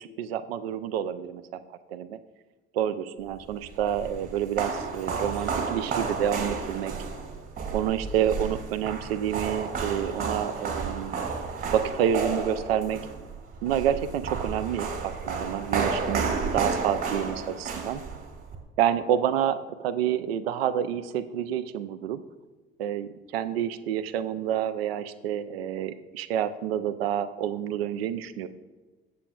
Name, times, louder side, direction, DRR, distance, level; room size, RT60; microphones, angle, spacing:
voice 1, 0.0-1.6 1.9-2.2 2.7-6.9 7.7-11.2 11.7-13.0 13.6-18.0 18.8-22.2 22.8-28.5, right 10 dB, 70° right, 13 dB, 0.6 m, -28 dB
sound 1, 3.5-18.6, right 5 dB, 45° right, 2.2 m, -32 dB
15.0 x 7.5 x 2.4 m, 1.3 s
figure-of-eight pair, 55°, 31 cm